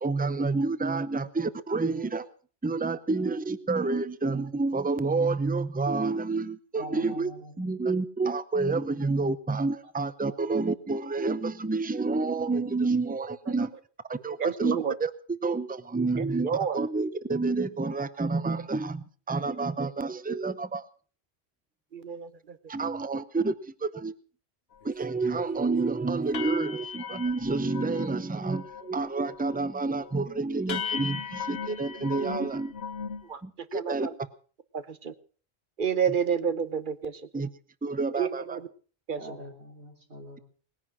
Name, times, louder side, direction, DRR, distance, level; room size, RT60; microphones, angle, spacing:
voice 1, 0.0-2.3 2.6-7.3 7.6-13.7 14.1-15.1 15.4-20.9 22.7-24.2 24.8-32.7 33.4-34.1 37.3-37.5 37.8-38.6, right 3 dB, 10° right, 14 dB, 0.6 m, -29 dB
voice 2, 6.8-7.7 8.9-9.0 9.8-9.9 10.3-10.4 39.2-40.4, right 1 dB, 80° right, 0 dB, 3.9 m, -44 dB
voice 3, 14.4-14.9 16.2-16.8 21.9-22.6 33.2-34.1 34.7-35.1 35.8-37.2 38.1-38.7 39.1-39.2, right 7 dB, 50° right, 13 dB, 1.1 m, -30 dB
sound 1, 24.8-24.9 25.3-25.6 25.9-26.0 26.3-28.1 28.4-28.9 29.2-29.6 30.0-30.1 30.7-33.3, left 6 dB, 70° left, 1.4 m, -37 dB
19.5 x 10.5 x 6.1 m, 0.42 s
omnidirectional pair, 1.1 m